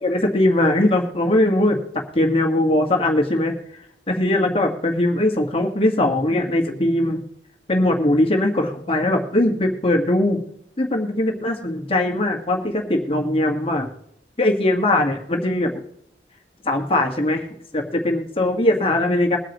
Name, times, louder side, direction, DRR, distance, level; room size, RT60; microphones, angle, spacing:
voice 1, 0.0-7.2 7.7-10.4 10.8-13.9 14.4-15.7 16.6-17.5 17.7-19.4, left 1 dB, 30° left, 2 dB, 1.7 m, -20 dB
22.5 x 8.9 x 3.0 m, 0.75 s
head